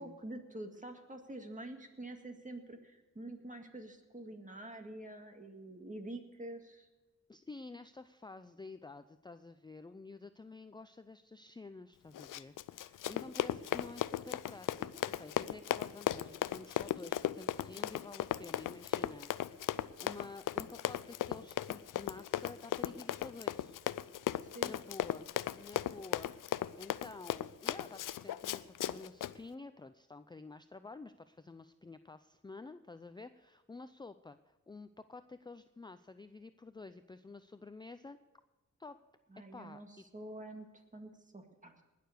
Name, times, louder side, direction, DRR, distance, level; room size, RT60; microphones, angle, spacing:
voice 1, 0.0-6.9 24.5-24.7 39.3-39.9 40.1-41.8, right 1 dB, 25° right, 5 dB, 2.0 m, -47 dB
voice 2, 7.3-23.8 24.6-25.3 25.5-38.2 38.8-39.0 39.5-40.0, left 3 dB, 15° left, 11 dB, 0.5 m, -50 dB
Run, 12.1-29.3, left 12 dB, 85° left, 0.5 m, -36 dB
19.5 x 6.8 x 6.7 m, 1.1 s
cardioid pair, 70°, 31 cm